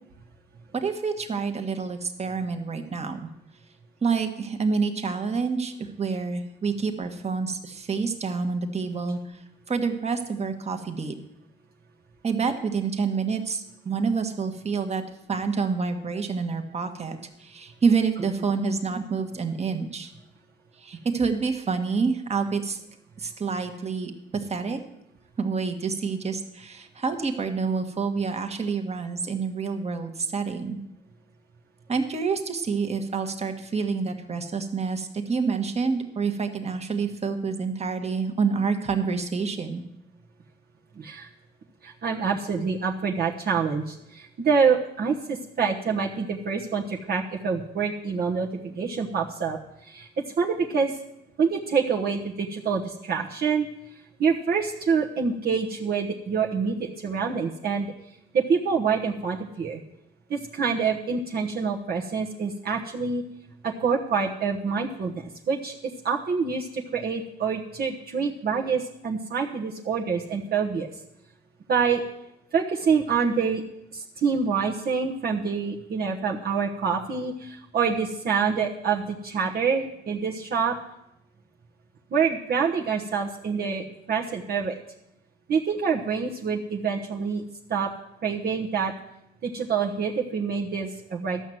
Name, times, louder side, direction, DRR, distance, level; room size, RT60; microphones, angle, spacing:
voice 1, 0.7-3.3 4.0-11.1 12.2-15.0 15.3-20.1 20.8-22.8 23.2-24.8 25.4-30.8 31.9-39.8, right 5 dB, 35° right, 6 dB, 1.4 m, -28 dB
voice 2, 41.0-41.3 41.8-50.1 50.4-50.9 51.4-53.7 54.2-57.9 58.3-59.8 60.3-63.2 63.6-65.8 66.0-70.9 71.7-72.0 72.5-73.6 73.9-80.8 82.1-84.7 85.5-87.4 87.7-87.9 88.2-88.9 89.4-91.4, right 5 dB, 50° right, -2 dB, 1.1 m, -26 dB
12.5 x 6.0 x 7.7 m, 0.85 s
cardioid pair, 90°, 20 cm